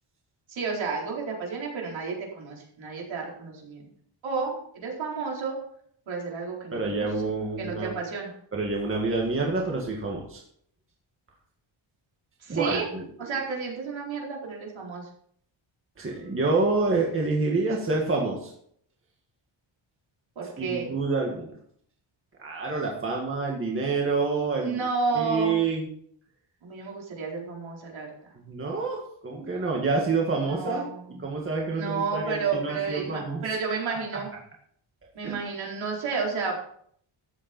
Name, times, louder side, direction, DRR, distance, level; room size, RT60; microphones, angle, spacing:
voice 1, 0.5-3.9 4.2-5.6 6.1-7.1 7.6-8.3 12.4-12.8 13.2-15.1 20.4-20.9 24.6-25.6 26.6-28.1 30.2-31.2 31.7-34.3 35.1-36.6, right 5 dB, 65° right, -2 dB, 4.4 m, -31 dB
voice 2, 6.7-7.9 8.5-10.4 12.5-13.1 16.0-18.5 20.6-21.5 22.4-24.8 25.1-25.9 28.4-30.8 31.1-33.4 33.9-34.0 35.2-35.3, right 3 dB, 25° right, -1 dB, 2.0 m, -27 dB
13.5 x 8.8 x 4.4 m, 0.63 s
wide cardioid pair, 175°, 50 cm